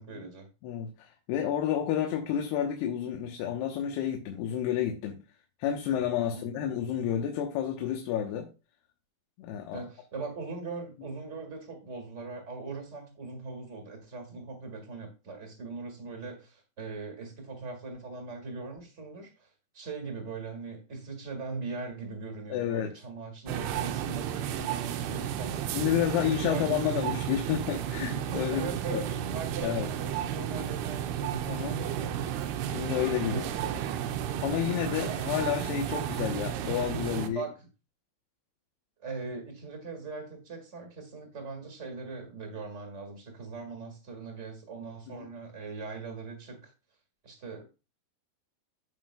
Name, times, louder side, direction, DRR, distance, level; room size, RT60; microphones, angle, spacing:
voice 1, 0.0-0.5 6.2-6.4 9.7-19.5 19.7-25.7 26.2-27.0 28.5-32.2 33.2-34.0 37.2-37.5 39.0-46.7 47.2-47.6, right 4 dB, 35° right, 1.2 m, -40 dB
voice 2, 0.6-5.2 5.6-8.5 9.4-9.8 22.5-22.9 25.7-29.0 29.6-29.9 31.5-31.8 32.7-33.4 34.4-37.4 45.1-45.3, left 10 dB, 90° left, 3.1 m, -30 dB
sound 1, 23.5-37.3, right 10 dB, 90° right, 2.7 m, -33 dB
15.0 x 5.3 x 2.3 m
omnidirectional pair, 4.5 m